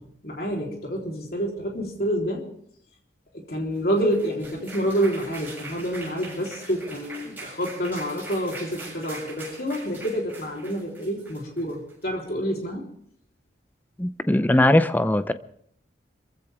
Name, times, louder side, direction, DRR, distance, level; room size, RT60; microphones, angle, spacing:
voice 1, 0.0-2.5 3.3-12.9, equal, 55° left, 0 dB, 3.6 m, -28 dB
sound 1, 3.7-12.0, right 2 dB, 10° right, 7.4 m, -42 dB
voice 2, 14.0-15.3, left 1 dB, 10° left, 12 dB, 0.6 m, -20 dB
25.5 x 15.0 x 3.5 m, 0.66 s
head